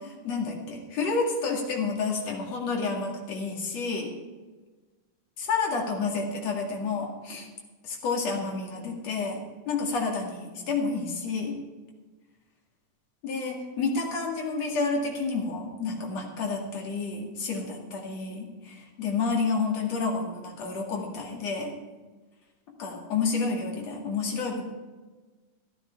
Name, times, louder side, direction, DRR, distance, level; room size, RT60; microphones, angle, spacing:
voice 1, 0.0-4.1 5.4-7.5 7.8-11.6 13.2-21.7 22.8-24.6, left 4 dB, 50° left, 0 dB, 3.1 m, -30 dB
15.0 x 11.5 x 4.5 m, 1.3 s
omnidirectional pair, 4.1 m